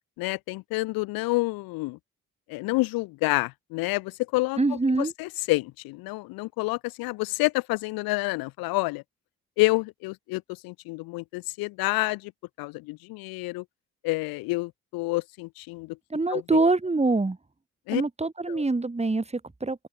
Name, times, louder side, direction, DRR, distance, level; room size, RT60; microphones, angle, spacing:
voice 1, 0.2-2.0 2.5-9.0 9.6-12.3 12.6-13.6 14.0-16.0 16.3-16.6 17.9-18.0 18.5-18.6, left 23 dB, 80° left, 1.7 m, -28 dB
voice 2, 4.6-5.1 16.1-17.4 17.9-19.9, right 3 dB, 20° right, 2.4 m, -25 dB
open air
hypercardioid pair, 50°, 35 cm